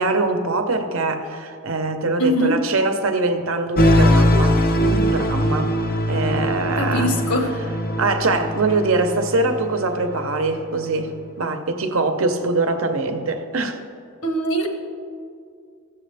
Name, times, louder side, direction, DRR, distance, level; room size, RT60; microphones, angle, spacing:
voice 1, 0.0-5.7 6.1-7.1 8.0-11.1 11.4-13.8, right 3 dB, 65° right, 6 dB, 0.8 m, -23 dB
voice 2, 2.2-2.6 6.8-7.6 14.2-14.7, equal, 75° left, 3 dB, 1.3 m, -22 dB
sound 1, 3.8-10.6, equal, 40° left, 0.6 m, -21 dB
15.0 x 7.1 x 3.4 m, 2.2 s
head